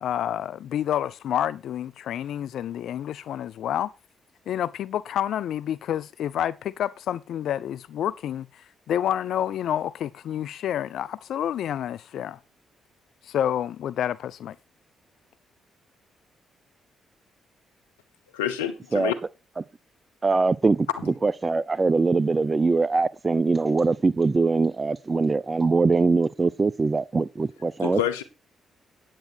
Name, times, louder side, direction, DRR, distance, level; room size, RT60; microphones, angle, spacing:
voice 1, 0.0-3.9 4.5-12.4 13.2-14.6, left 10 dB, 70° left, 0.5 m, -29 dB
voice 2, 18.3-19.2 27.8-28.2, left 10 dB, 90° left, 1.0 m, -27 dB
voice 3, 20.2-28.0, right 3 dB, 35° right, 0.7 m, -22 dB
9.2 x 9.1 x 4.4 m
hypercardioid pair, 45°, 0 cm